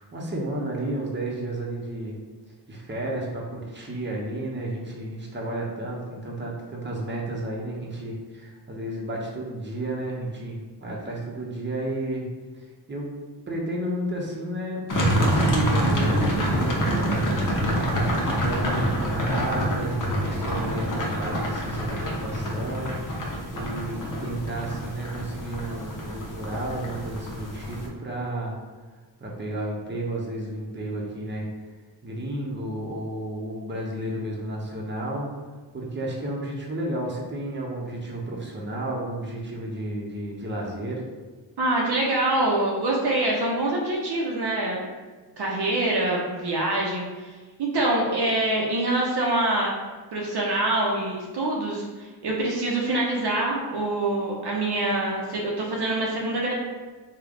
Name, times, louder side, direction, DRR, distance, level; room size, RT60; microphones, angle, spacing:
voice 1, 0.0-2.2 2.7-12.2 12.6-13.1 13.5-14.8 15.2-16.9 17.8-28.6 29.2-31.5 32.0-35.3 35.7-41.0, right 1 dB, 25° right, -2 dB, 1.0 m, -32 dB
sound 1, 14.9-27.9, equal, 45° left, 0.9 m, -26 dB
voice 2, 41.6-44.9 45.4-47.3 47.6-49.7 50.1-56.5, right 2 dB, 60° right, -3 dB, 0.8 m, -25 dB
3.2 x 2.4 x 3.8 m, 1.3 s
cardioid pair, 50°, 45 cm